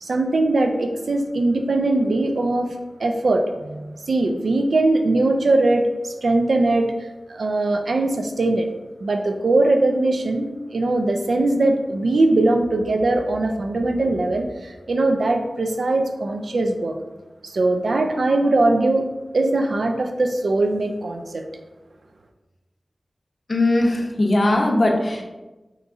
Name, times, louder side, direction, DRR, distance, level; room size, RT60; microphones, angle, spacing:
voice 1, 0.0-8.7 9.0-17.0 17.4-19.0 19.3-21.4, right 2 dB, 85° right, 4 dB, 0.3 m, -21 dB
voice 2, 23.5-25.2, left 1 dB, 55° left, 1 dB, 0.5 m, -19 dB
3.7 x 2.9 x 2.3 m, 1.1 s
wide cardioid pair, 50°, 0 cm